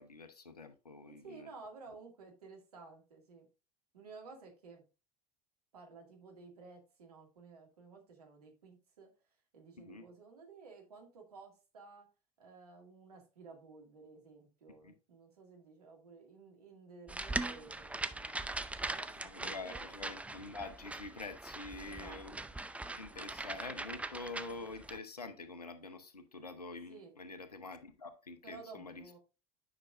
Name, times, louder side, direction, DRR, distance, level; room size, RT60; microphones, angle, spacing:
voice 1, 0.0-1.5 9.8-10.1 14.8-14.9 19.1-22.4 22.9-29.0, left 3 dB, 90° left, 0.9 m, -46 dB
voice 2, 1.1-3.5 3.9-4.8 5.7-9.1 9.5-12.1 12.4-18.4 18.8-20.2 21.8-22.5 26.9-27.1 28.4-29.2, right 4 dB, 80° right, 2.2 m, -54 dB
sound 1, 17.1-25.0, right 2 dB, 5° right, 0.5 m, -41 dB
9.8 x 5.9 x 2.5 m
figure-of-eight pair, 70°, 19 cm